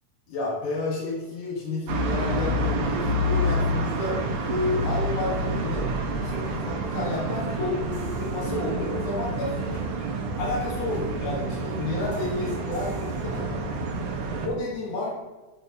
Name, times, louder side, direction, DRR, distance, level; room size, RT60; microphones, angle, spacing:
voice 1, 0.3-5.9 6.2-9.9 10.3-13.7 14.4-15.1, left 2 dB, 90° left, -4 dB, 2.8 m, -31 dB
sound 1, 1.9-14.5, right 1 dB, 85° right, 2.3 m, -28 dB
sound 2, 7.9-9.4 9.7-10.0 10.3-13.6, equal, 30° left, 2.2 m, -44 dB
7.4 x 6.4 x 2.7 m, 1.2 s
omnidirectional pair, 3.4 m